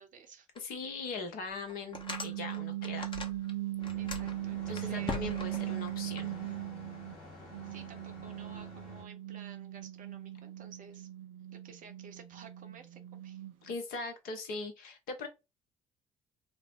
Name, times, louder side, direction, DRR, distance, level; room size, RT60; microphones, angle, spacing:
voice 1, 0.0-0.5 4.0-5.5 7.6-11.1 11.5-13.4, right 5 dB, 50° right, 0.9 m, -53 dB
sound 1, 0.5-0.6 1.1-1.2 1.7-3.5 3.8-6.2, left 4 dB, 30° left, 0.9 m, -41 dB
voice 2, 0.6-3.1 4.7-6.3 13.6-15.3, left 3 dB, 60° left, 1.0 m, -40 dB
sound 2, 1.9-7.2 7.5-13.7, right 15 dB, 70° right, 0.5 m, -39 dB
sound 3, 3.8-9.0, left 2 dB, 75° left, 1.2 m, -50 dB
4.5 x 2.1 x 2.5 m
figure-of-eight pair, 50°, 17 cm